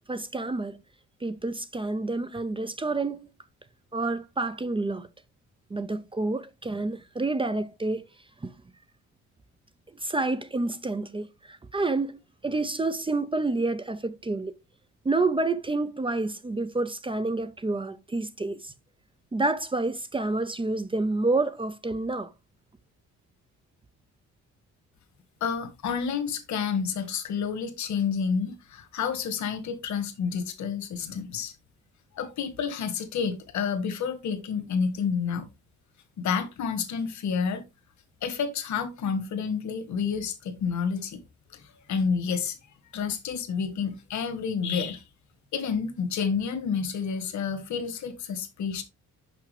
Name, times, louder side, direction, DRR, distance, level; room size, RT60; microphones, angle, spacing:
voice 1, 0.1-0.8 1.2-3.3 3.9-5.1 5.7-8.0 8.4-8.5 10.0-14.5 15.0-18.7 19.3-22.3, right 2 dB, 15° right, 0.5 m, -29 dB
voice 2, 25.4-31.5 32.1-35.5 36.2-37.6 38.2-41.2 41.5-42.6 42.9-45.0 45.5-48.8, left 6 dB, 70° left, 1.5 m, -29 dB
6.0 x 5.8 x 3.3 m
cardioid pair, 90°, 30 cm